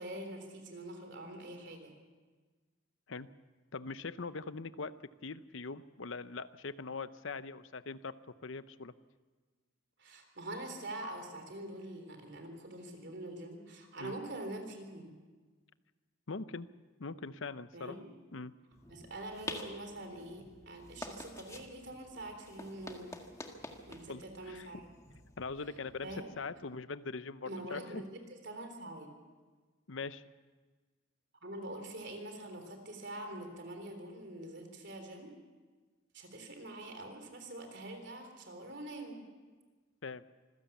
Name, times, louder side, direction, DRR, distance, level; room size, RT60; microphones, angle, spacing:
voice 1, 0.0-1.9 10.0-15.2 17.7-18.1 18.9-23.1 23.9-24.9 26.0-26.3 27.5-29.1 31.4-35.3 36.1-39.2, right 1 dB, 55° right, 5 dB, 3.6 m, -45 dB
voice 2, 3.7-4.9 5.2-8.1 8.4-8.9 14.0-14.2 16.3-16.7 17.0-18.0 18.3-18.5 24.1-24.7 25.4-26.1 26.4-28.0 29.9-30.2 40.0-40.3, left 4 dB, 70° left, 14 dB, 0.7 m, -42 dB
sound 1, 18.7-26.3, left 2 dB, 15° left, 1.7 m, -49 dB
26.0 x 16.0 x 7.2 m, 1.4 s
head